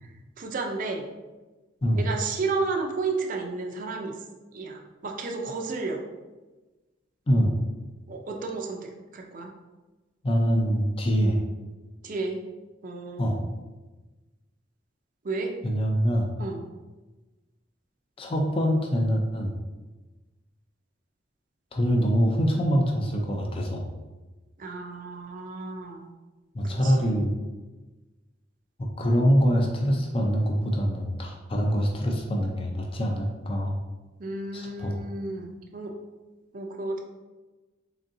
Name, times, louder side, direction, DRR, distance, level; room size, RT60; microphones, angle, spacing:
voice 1, 0.0-1.1 1.9-4.1 4.5-6.0 8.1-9.5 12.0-12.4 12.8-13.4 15.2-15.5 16.4-16.6 24.6-26.1 26.6-27.2 34.2-35.9 36.5-37.0, right 3 dB, 45° right, 2 dB, 0.4 m, -32 dB
voice 2, 7.3-7.6 10.2-11.4 13.2-13.4 15.6-16.3 18.2-19.6 21.7-23.9 26.5-27.3 28.8-33.7 34.5-35.0, equal, 30° left, 1 dB, 0.4 m, -24 dB
4.0 x 3.5 x 2.6 m, 1.2 s
head